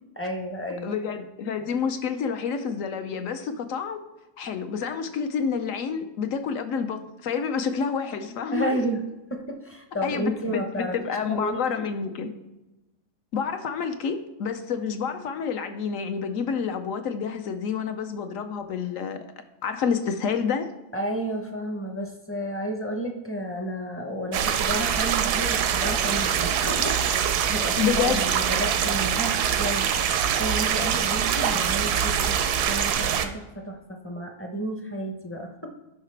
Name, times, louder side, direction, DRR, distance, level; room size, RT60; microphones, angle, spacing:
voice 1, 0.2-0.9 8.5-9.0 9.3-10.9 11.3-11.9 20.9-29.9 30.4-35.7, right 1 dB, 15° left, 3 dB, 0.5 m, -32 dB
voice 2, 0.8-4.0 4.4-8.8 10.0-12.3 13.3-19.2 19.6-20.7 27.8-28.3, left 6 dB, 65° left, 8 dB, 1.0 m, -28 dB
sound 1, 24.3-33.3, right 8 dB, 85° right, 1.2 m, -24 dB
10.5 x 5.7 x 3.3 m, 1.0 s
omnidirectional pair, 1.6 m